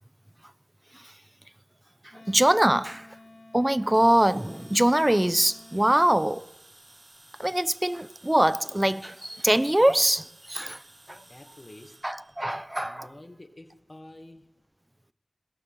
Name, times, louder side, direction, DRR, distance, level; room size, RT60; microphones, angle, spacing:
voice 1, 2.0-3.1 3.5-6.5 7.4-10.8 11.1-11.2 12.0-13.1, right 1 dB, 15° right, 0.9 m, -23 dB
Wind instrument woodwind instrument, 2.1-6.3, left 2 dB, 55° left, 2.1 m, -51 dB
sound 1, 3.9-13.2, right 2 dB, 40° right, 2.7 m, -54 dB
voice 2, 11.1-12.1 12.8-14.5, left 1 dB, 35° left, 2.2 m, -49 dB
21.0 x 19.5 x 8.2 m
wide cardioid pair, 70°, 0 cm